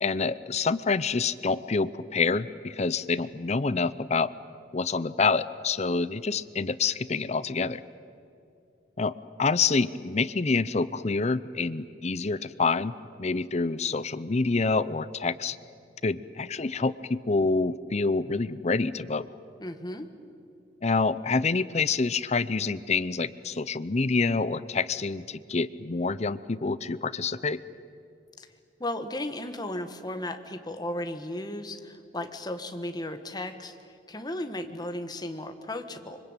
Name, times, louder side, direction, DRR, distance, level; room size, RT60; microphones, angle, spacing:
voice 1, 0.0-4.3 4.7-7.8 9.0-9.1 9.4-12.9 13.2-15.6 16.0-19.3 20.8-27.6, left 4 dB, 40° left, 16 dB, 0.6 m, -27 dB
voice 2, 19.6-20.1 28.4-28.5 28.8-33.8 34.1-36.2, left 1 dB, 25° left, 7 dB, 1.6 m, -35 dB
26.0 x 25.0 x 9.0 m, 2.6 s
head